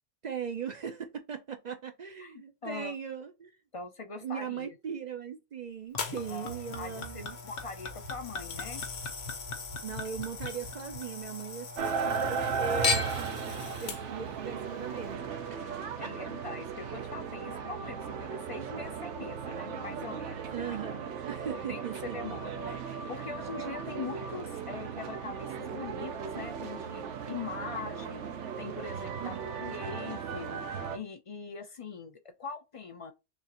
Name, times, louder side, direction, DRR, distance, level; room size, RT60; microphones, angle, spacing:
voice 1, 0.2-3.6 4.2-7.4 9.8-13.1 13.8-15.6 16.0-16.1 20.5-22.4 29.2-29.4, right 7 dB, 55° right, 0.5 m, -39 dB
voice 2, 2.2-2.9 3.7-4.7 6.3-8.8 13.1-13.3 15.8-20.6 20.9-21.0 21.5-28.3 28.6-33.1, left 5 dB, 50° left, 0.4 m, -42 dB
Chink clink / Liquid, 5.9-11.5 11.8-12.5 12.8-13.4 14.1-14.2, left 5 dB, 85° left, 1.3 m, -37 dB
sound 1, 6.0-14.3 15.0-15.2, left 4 dB, 65° left, 1.1 m, -42 dB
sound 2, 11.8-31.0, right 6 dB, 80° right, 1.0 m, -36 dB
6.1 x 2.4 x 2.9 m
omnidirectional pair, 1.2 m